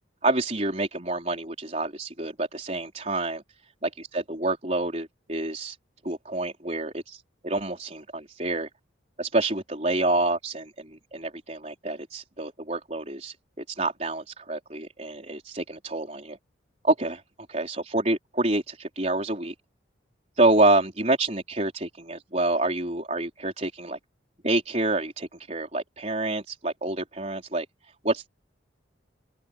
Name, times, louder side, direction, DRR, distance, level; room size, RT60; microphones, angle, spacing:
voice 1, 0.2-3.4 3.8-5.8 6.0-8.7 9.2-13.3 13.7-16.4 16.8-17.2 17.5-19.5 20.4-24.0 24.4-27.7 28.0-28.3, right 2 dB, 35° right, 4.4 m, -27 dB
open air
head